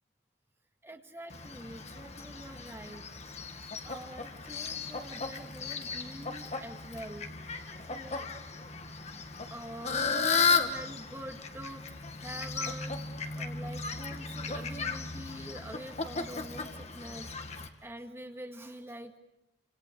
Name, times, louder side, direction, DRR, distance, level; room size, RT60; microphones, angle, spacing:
voice 1, 0.8-3.0 3.8-7.3 7.9-8.3 9.5-13.0 13.3-19.2, right 1 dB, 15° right, 5 dB, 1.9 m, -45 dB
Fowl, 1.3-17.7, left 5 dB, 40° left, 2.0 m, -35 dB
sound 1, 12.6-17.4, equal, 55° right, 4.5 m, -65 dB
29.0 x 26.5 x 6.8 m, 0.83 s
head